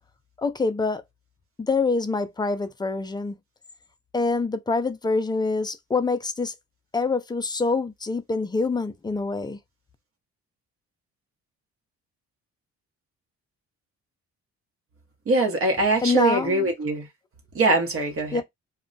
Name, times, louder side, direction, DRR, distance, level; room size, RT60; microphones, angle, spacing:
voice 1, 0.4-1.0 1.6-3.4 4.1-6.5 6.9-9.6 16.0-16.7 18.3-18.4, left 3 dB, 15° left, 0.4 m, -25 dB
voice 2, 15.3-17.1 17.5-18.4, right 2 dB, 45° right, 0.9 m, -22 dB
2.2 x 2.1 x 3.8 m
cardioid pair, 90°, 30 cm